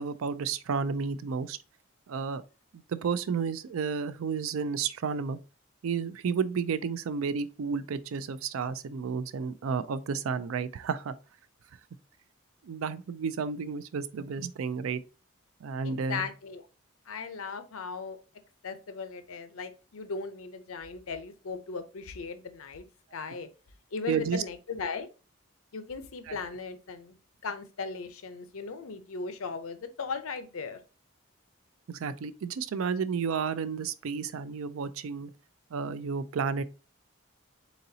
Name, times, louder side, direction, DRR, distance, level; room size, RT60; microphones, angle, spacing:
voice 1, 0.0-1.6 2.1-2.4 2.9-5.4 5.8-11.1 12.6-15.0 15.6-16.3 24.1-24.4 26.3-26.4 31.9-35.3 35.7-36.6, right 5 dB, 80° right, 0.4 m, -31 dB
voice 2, 15.8-16.7 17.1-18.2 18.6-22.8 23.1-23.5 23.9-25.1 25.7-27.2 27.4-30.8, left 4 dB, 85° left, 0.6 m, -37 dB
4.1 x 3.9 x 2.7 m
head